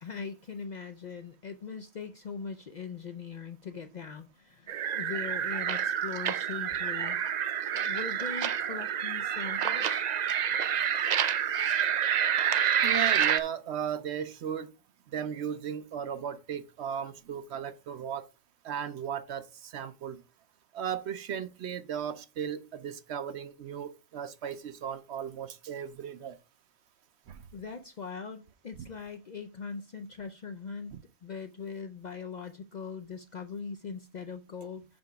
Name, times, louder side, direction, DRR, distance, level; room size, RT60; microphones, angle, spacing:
voice 1, 0.0-7.2 7.7-10.0 27.5-34.9, left 5 dB, 55° left, 0.5 m, -41 dB
sound 1, 4.7-13.4, right 9 dB, 85° right, 0.3 m, -28 dB
voice 2, 12.8-14.7 15.1-18.3 18.6-20.2 20.7-26.4 27.3-27.4, right 8 dB, 65° right, 0.8 m, -36 dB
5.7 x 5.2 x 5.0 m
omnidirectional pair, 1.3 m